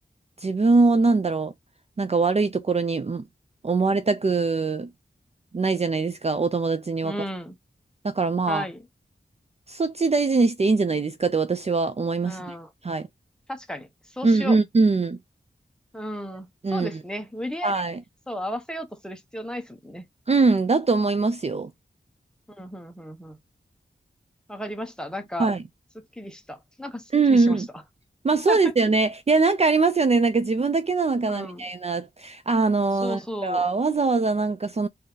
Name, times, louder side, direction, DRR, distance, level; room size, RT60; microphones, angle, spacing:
voice 1, 0.4-1.5 2.0-3.2 3.6-4.9 5.5-7.1 8.0-8.6 9.7-12.5 12.8-13.1 14.2-15.2 16.6-17.0 17.6-18.0 20.3-21.7 25.4-25.6 27.1-27.7 28.2-34.9, right 3 dB, 35° right, 0.4 m, -22 dB
voice 2, 7.0-7.6 8.5-8.8 12.2-12.7 13.5-13.9 14.1-14.6 15.9-17.8 18.3-20.1 22.6-23.4 24.5-25.5 25.9-27.6 28.5-28.7 31.3-31.6 33.0-33.6, equal, 5° left, 1.0 m, -34 dB
3.9 x 2.6 x 3.8 m
wide cardioid pair, 70°, 19 cm